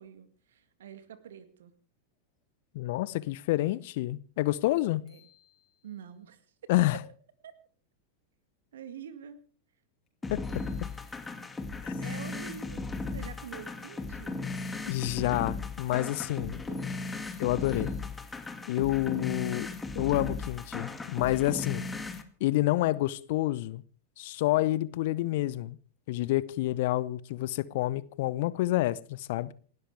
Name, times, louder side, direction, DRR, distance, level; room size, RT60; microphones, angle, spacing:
voice 1, 0.0-1.7 5.1-5.2 5.8-6.4 7.4-7.6 8.7-9.4 12.0-14.4 16.4-16.8 18.8-19.4, right 8 dB, 65° right, 1.9 m, -46 dB
voice 2, 2.7-5.0 6.7-7.0 10.3-10.4 11.8-12.0 14.9-16.6 17.4-17.9 18.7-19.7 19.9-21.9 22.4-23.8 24.2-25.8 26.1-29.5, left 16 dB, 55° left, 0.8 m, -28 dB
sound 1, 4.6-4.7 5.1-6.2 10.1-10.2 10.4-11.5 14.6-15.5 16.7-18.5, left 8 dB, 30° left, 4.6 m, -64 dB
sound 2, 10.2-22.2, left 3 dB, 10° left, 1.9 m, -36 dB
28.5 x 12.5 x 3.4 m
figure-of-eight pair, 90°, 0 cm